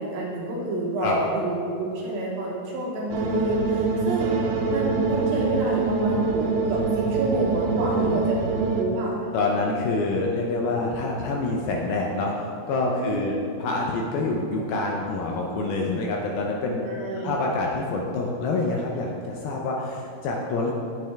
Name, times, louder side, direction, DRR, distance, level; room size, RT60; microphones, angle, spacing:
voice 1, 0.0-8.3 8.6-9.2 13.0-13.6 16.8-17.4, right 1 dB, 70° right, -3 dB, 2.6 m, -29 dB
sound 1, 3.1-8.9, right 4 dB, 85° right, 2.9 m, -24 dB
voice 2, 7.8-8.2 9.3-16.9 17.2-20.7, left 3 dB, 80° left, 0 dB, 2.3 m, -27 dB
10.5 x 7.8 x 3.4 m, 2.6 s
omnidirectional pair, 4.9 m